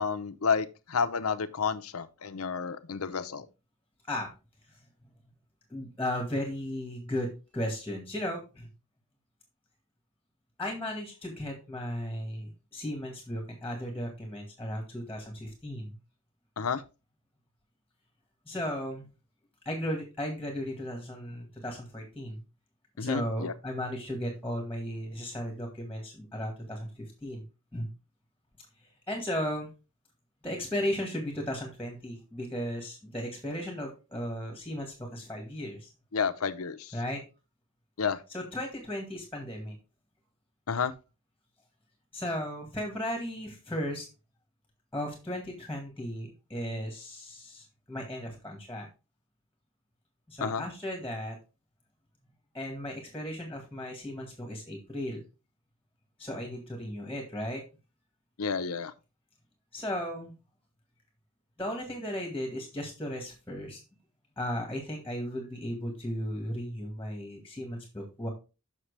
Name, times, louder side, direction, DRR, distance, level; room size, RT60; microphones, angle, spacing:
voice 1, 0.0-3.5 16.6-16.8 23.0-23.5 36.1-36.9 38.0-38.2 40.7-40.9 50.4-50.6 58.4-58.9, left 5 dB, 80° left, 0.7 m, -30 dB
voice 2, 5.7-8.7 10.6-16.0 18.5-19.1 19.7-22.4 23.0-27.4 27.7-27.9 29.1-29.7 30.4-35.9 36.9-37.2 38.3-39.8 42.1-44.1 44.9-48.9 50.3-51.4 52.5-55.2 56.2-57.6 59.7-60.3 61.6-63.8 64.4-68.3, equal, 5° left, 1.8 m, -35 dB
7.3 x 6.1 x 3.2 m
head